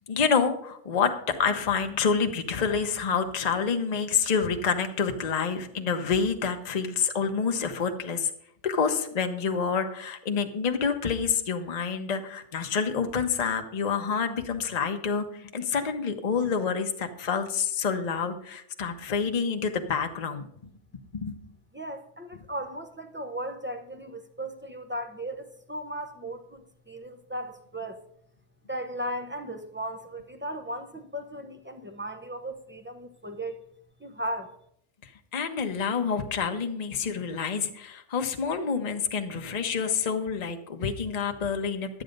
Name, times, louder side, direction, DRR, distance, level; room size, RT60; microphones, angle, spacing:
voice 1, 0.1-8.3 8.6-20.5 21.1-21.4 35.3-42.0, left 6 dB, 35° left, 0.8 m, -28 dB
voice 2, 21.7-28.0 28.7-33.6 34.0-34.6, right 1 dB, 20° right, 0.3 m, -36 dB
11.0 x 9.0 x 5.2 m
omnidirectional pair, 1.6 m